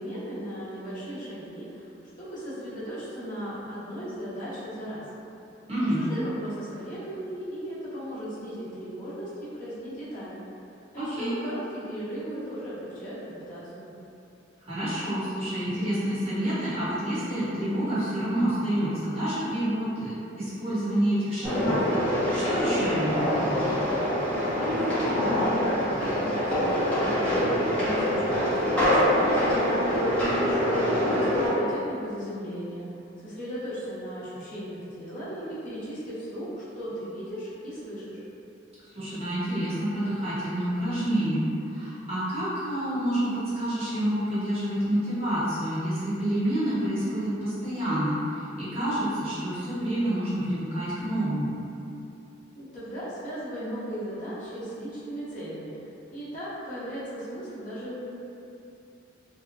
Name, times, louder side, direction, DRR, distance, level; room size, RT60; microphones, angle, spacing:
voice 1, 0.0-1.9 2.2-5.0 6.0-10.4 10.9-13.9 24.7-27.4 27.7-29.7 30.4-32.9 33.2-38.2 52.5-55.7 56.1-58.1, equal, 40° left, -11 dB, 0.7 m, -37 dB
voice 2, 5.7-6.0 11.0-11.3 14.7-20.1 20.4-23.8 38.9-48.2 48.6-51.5, right 1 dB, 30° right, -12 dB, 0.8 m, -28 dB
sound 1, 21.4-31.5, equal, 5° left, 0.6 m, -25 dB
2.6 x 2.0 x 2.6 m, 2.8 s
head